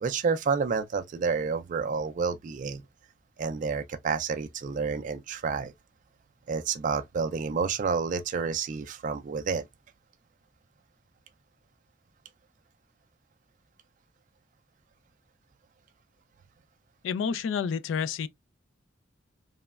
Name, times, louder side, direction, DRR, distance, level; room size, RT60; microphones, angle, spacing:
voice 1, 0.0-2.8 3.4-5.7 6.5-9.6, right 5 dB, 45° right, 0.3 m, -29 dB
voice 2, 17.0-18.3, left 6 dB, 85° left, 0.3 m, -29 dB
3.0 x 2.1 x 2.2 m
head